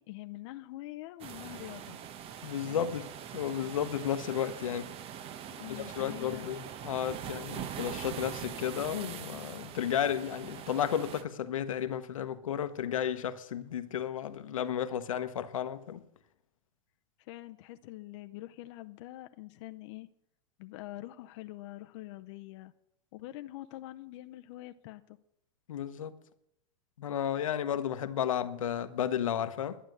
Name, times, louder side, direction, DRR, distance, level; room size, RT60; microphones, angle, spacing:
voice 1, 0.0-2.0 2.7-2.9 5.6-6.5 17.2-20.1 20.6-22.7 23.1-25.2, left 16 dB, 60° left, 0.7 m, -45 dB
sound 1, 1.2-11.2, right 9 dB, 35° right, 1.0 m, -43 dB
voice 2, 2.4-3.1 3.3-4.9 5.7-16.0 25.7-26.1 27.0-29.8, left 9 dB, 90° left, 1.1 m, -33 dB
11.5 x 10.0 x 7.8 m
hypercardioid pair, 120°, 17 cm